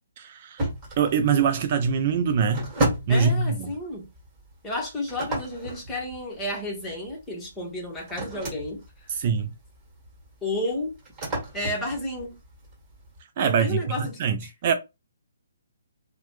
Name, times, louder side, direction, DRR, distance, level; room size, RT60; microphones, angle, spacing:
voice 1, 0.2-0.6 1.0-2.7 3.1-3.7 9.1-9.5 13.4-14.7, right 6 dB, 40° right, 0.3 m, -23 dB
sound 1, 0.6-13.2, right 1 dB, 25° right, 1.6 m, -34 dB
voice 2, 3.1-4.1 4.6-9.1 10.4-11.0 11.5-12.4 13.4-14.5, left 1 dB, 10° left, 1.0 m, -32 dB
2.9 x 2.1 x 3.1 m
hypercardioid pair, 145°, 0 cm